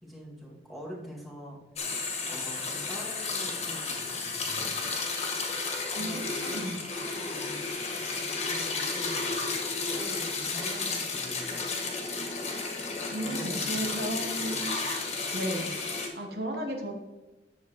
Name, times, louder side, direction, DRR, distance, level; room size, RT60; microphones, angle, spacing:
voice 1, 0.0-1.6 2.2-4.7 5.9-7.9 8.4-9.6 9.9-11.6 13.2-14.6, equal, ahead, -5 dB, 2.1 m, -45 dB
sound 1, 1.8-16.1, left 4 dB, 35° left, 1.4 m, -32 dB
voice 2, 5.9-6.8 13.1-14.7 15.3-15.7 16.1-16.9, right 1 dB, 60° right, 2 dB, 1.2 m, -34 dB
10.5 x 7.5 x 3.0 m, 1.1 s
head